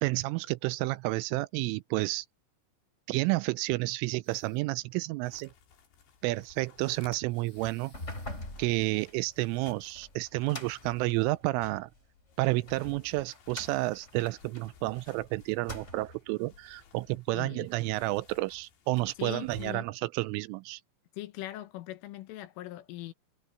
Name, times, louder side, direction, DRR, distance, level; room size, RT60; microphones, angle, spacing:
voice 1, 0.0-2.3 3.1-5.5 6.2-7.9 8.6-11.9 12.4-20.8, right 21 dB, 85° right, 3.0 m, -30 dB
sound 1, 4.2-4.8 7.2-8.6, left 3 dB, 30° left, 8.1 m, -63 dB
sound 2, 5.2-19.8, left 6 dB, 60° left, 5.3 m, -57 dB
sound 3, 7.8-11.9 12.4-15.2 15.5-16.3, left 1 dB, 15° left, 6.0 m, -44 dB
voice 2, 17.3-17.7 19.2-19.9 21.1-23.1, left 15 dB, 80° left, 3.8 m, -40 dB
omnidirectional pair, 5.8 m